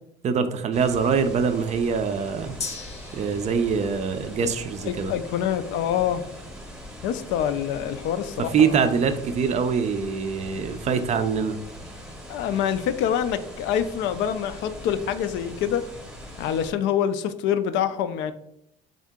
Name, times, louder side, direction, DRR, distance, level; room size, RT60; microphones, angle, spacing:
voice 1, 0.2-2.5 3.1-5.1 8.5-11.6, right 6 dB, 35° right, 9 dB, 0.4 m, -24 dB
sound 1, 0.7-16.7, equal, 5° right, 0.8 m, -41 dB
Gong, 2.6-10.4 10.7-10.8, left 4 dB, 35° left, 0.7 m, -44 dB
voice 2, 4.8-6.2 7.0-8.8 12.3-15.8 16.4-18.3, left 9 dB, 75° left, 11 dB, 0.4 m, -26 dB
3.7 x 2.7 x 3.5 m, 0.75 s
cardioid pair, 130°, 19 cm